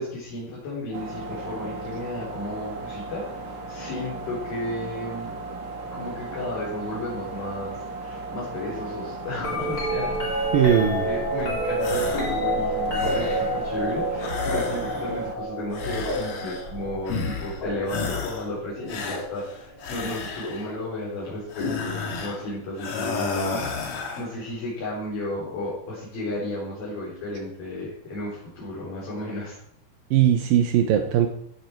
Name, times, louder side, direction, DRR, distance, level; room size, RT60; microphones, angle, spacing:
voice 1, 0.0-5.3 5.9-23.9 24.2-29.6, left 1 dB, 75° left, -8 dB, 5.9 m, -33 dB
sound 1, 0.9-15.4, right 3 dB, 55° right, 1.3 m, -36 dB
sound 2, 9.4-19.5 20.4-20.8 21.6-22.6 24.4-24.5, right 1 dB, 25° left, 3.8 m, -29 dB
voice 2, 10.5-11.0 30.1-31.3, right 10 dB, 80° right, 6 dB, 2.6 m, -19 dB
sound 3, 11.8-12.4 12.7-13.6 14.2-15.2 15.7-16.7 17.1-17.6 17.9-18.5 18.9-20.7 21.5-22.4 22.8-24.3, left 4 dB, 50° left, 2.1 m, -32 dB
15.5 x 9.4 x 4.6 m, 0.68 s
omnidirectional pair, 4.1 m